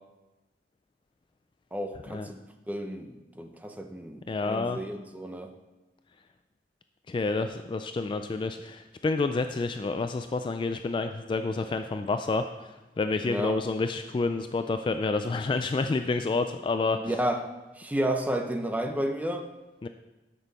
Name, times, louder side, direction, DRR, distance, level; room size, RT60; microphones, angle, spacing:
voice 1, 1.7-5.5 13.2-13.6 17.0-17.4 17.8-19.5, right 1 dB, 10° right, 5 dB, 0.7 m, -32 dB
voice 2, 4.3-4.8 7.1-17.0 19.8-19.9, left 3 dB, 30° left, 8 dB, 0.3 m, -29 dB
13.0 x 6.2 x 4.1 m, 1.1 s
head